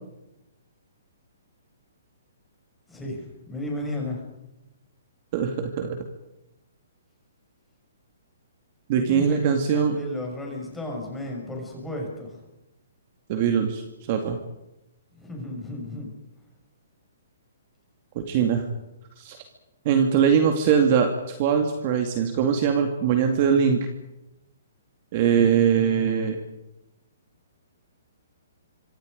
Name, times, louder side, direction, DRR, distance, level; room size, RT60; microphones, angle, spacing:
voice 1, 2.9-4.2 8.9-12.4 15.1-16.1 25.4-26.3, left 1 dB, 5° left, -1 dB, 6.2 m, -34 dB
voice 2, 5.3-6.0 8.9-10.0 13.3-14.4 18.2-18.6 19.2-19.4 19.9-23.9 25.1-26.4, right 7 dB, 35° right, 5 dB, 2.3 m, -22 dB
30.0 x 25.5 x 5.2 m, 0.92 s
hypercardioid pair, 165°, 0 cm